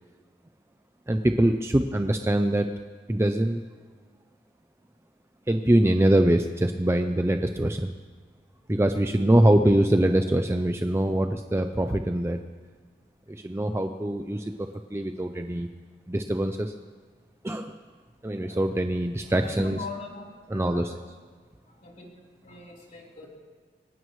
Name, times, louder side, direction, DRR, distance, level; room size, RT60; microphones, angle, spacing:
voice 1, 1.1-2.7 3.1-3.6 5.5-7.9 8.7-12.4 13.3-15.7 16.1-16.7 17.4-17.7 18.2-19.8 20.5-20.9, right 1 dB, 15° right, 6 dB, 0.5 m, -23 dB
voice 2, 19.4-20.2 20.5-20.8 21.7-22.1 22.4-23.3, left 3 dB, 45° left, -4 dB, 3.9 m, -41 dB
24.0 x 18.0 x 3.2 m, 1.5 s
head